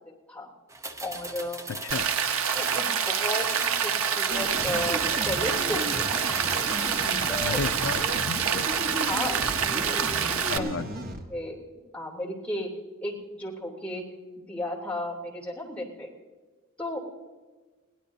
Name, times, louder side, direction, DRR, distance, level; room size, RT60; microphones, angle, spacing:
sound 1, 0.7-8.0, right 2 dB, 15° right, 0.8 m, -39 dB
voice 1, 1.0-1.6 2.5-6.2 7.3-7.6 9.0-10.8 11.3-11.6 11.9-12.7 13.0-14.0 14.4-16.1 16.8-17.0, left 1 dB, 5° left, -4 dB, 3.1 m, -34 dB
voice 2, 1.7-2.1 7.4-8.7 10.5-10.9, left 5 dB, 65° left, 10 dB, 0.4 m, -33 dB
Rain, 1.9-10.6, right 7 dB, 85° right, 0.9 m, -27 dB
sound 2, 4.3-11.2, right 1 dB, 45° right, 1.4 m, -35 dB
22.5 x 17.0 x 2.7 m, 1.3 s
head